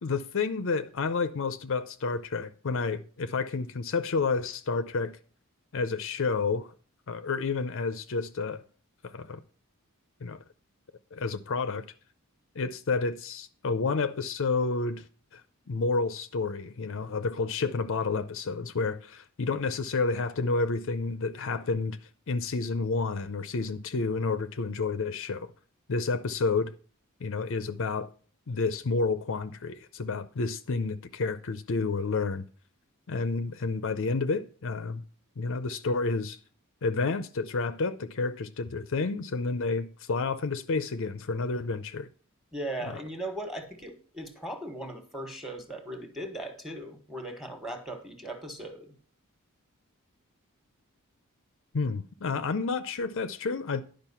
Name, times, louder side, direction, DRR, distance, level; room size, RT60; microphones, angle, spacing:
voice 1, 0.0-5.1 5.7-6.7 7.1-8.6 9.0-9.4 10.2-10.4 11.1-11.8 12.6-15.0 15.3-15.4 15.7-22.0 22.3-25.5 25.9-26.7 27.2-28.1 28.5-32.4 33.1-35.0 35.4-36.4 36.8-42.1 51.7-53.8, left 4 dB, 60° left, 0.6 m, -30 dB
voice 2, 42.5-48.9, right 1 dB, ahead, 1.5 m, -38 dB
11.0 x 5.3 x 5.6 m
head